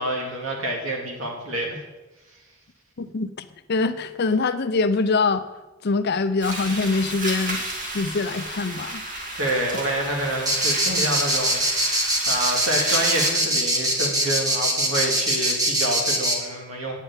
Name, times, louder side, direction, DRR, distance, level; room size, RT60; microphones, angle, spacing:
voice 1, 0.0-1.8 9.3-17.0, right 1 dB, 75° right, 0 dB, 2.3 m, -28 dB
voice 2, 3.0-3.3 3.7-5.4 5.8-7.6 7.9-9.0, left 3 dB, 55° left, 11 dB, 0.6 m, -23 dB
sound 1, 6.4-13.3, right 1 dB, 40° right, 2.2 m, -32 dB
sound 2, 10.5-16.4, right 1 dB, 20° right, 1.5 m, -22 dB
9.2 x 5.6 x 8.2 m, 1.1 s
head